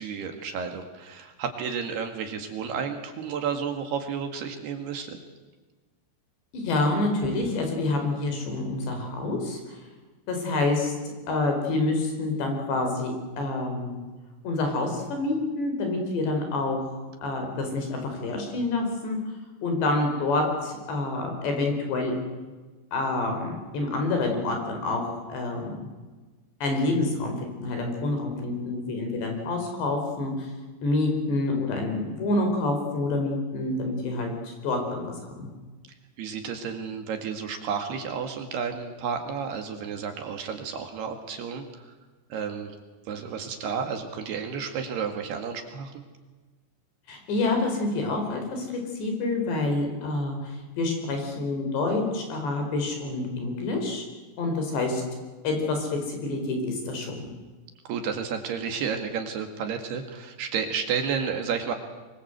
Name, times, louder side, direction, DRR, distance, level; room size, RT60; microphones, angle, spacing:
voice 1, 0.0-5.2 36.2-41.9 42.3-42.8 43.1-45.9 57.9-61.7, right 6 dB, 65° right, 5 dB, 3.7 m, -31 dB
voice 2, 6.5-9.8 10.3-10.9 11.3-14.0 14.4-19.2 19.6-22.2 22.9-25.9 26.6-27.4 27.6-30.5 30.8-35.5 47.1-54.1 54.4-55.0 55.4-57.3, left 2 dB, 65° left, 4 dB, 6.7 m, -27 dB
24.5 x 24.0 x 8.0 m, 1.3 s
omnidirectional pair, 5.4 m